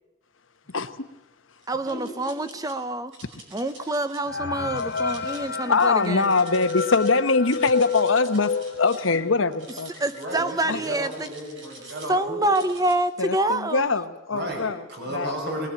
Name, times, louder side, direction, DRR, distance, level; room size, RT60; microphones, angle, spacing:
voice 1, 0.7-1.1 5.6-9.9 10.7-10.8 13.2-15.3, left 4 dB, 80° left, 10 dB, 1.2 m, -23 dB
sound 1, 1.6-2.7 3.1-4.2 4.7-7.1 7.4-9.1 9.5-12.1 12.5-13.0, right 2 dB, 75° right, 5.2 m, -47 dB
voice 2, 1.7-3.1 3.5-6.3 10.0-11.3 12.1-13.9, right 1 dB, 20° right, 12 dB, 0.8 m, -26 dB
sound 2, 4.3-9.7 10.1-10.2 10.4-10.6 11.3-11.4 11.8-12.1, left 5 dB, 55° left, 0.8 m, -30 dB
voice 3, 10.2-12.5 14.3-15.7, right 1 dB, 60° right, 1 dB, 5.8 m, -33 dB
20.5 x 19.5 x 8.9 m, 1.0 s
head